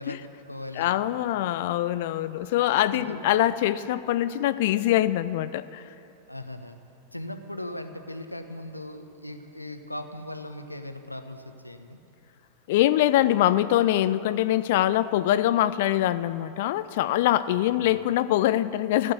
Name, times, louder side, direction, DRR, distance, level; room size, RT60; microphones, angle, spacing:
voice 1, 0.0-1.0 2.4-2.5 2.9-3.2 6.3-6.8 7.1-12.0 17.5-17.9, left 1 dB, 85° left, 8 dB, 0.9 m, -39 dB
voice 2, 0.8-5.8 12.7-19.1, left 13 dB, 50° left, 15 dB, 0.4 m, -23 dB
15.5 x 8.4 x 9.6 m, 2.8 s
figure-of-eight pair, 90°, 0 cm